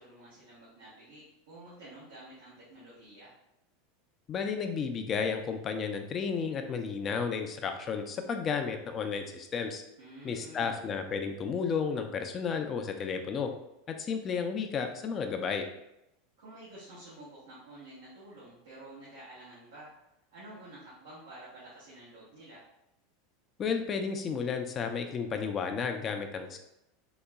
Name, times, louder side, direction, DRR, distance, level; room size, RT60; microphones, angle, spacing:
voice 1, 0.0-3.3 10.0-10.8 16.4-19.9 20.3-22.6, right 1 dB, 85° right, -9 dB, 1.1 m, -50 dB
voice 2, 4.3-9.8 10.2-13.5 13.9-15.7 23.6-26.6, left 6 dB, 35° left, 6 dB, 0.5 m, -32 dB
3.9 x 2.8 x 2.3 m, 0.85 s
hypercardioid pair, 105°, 0 cm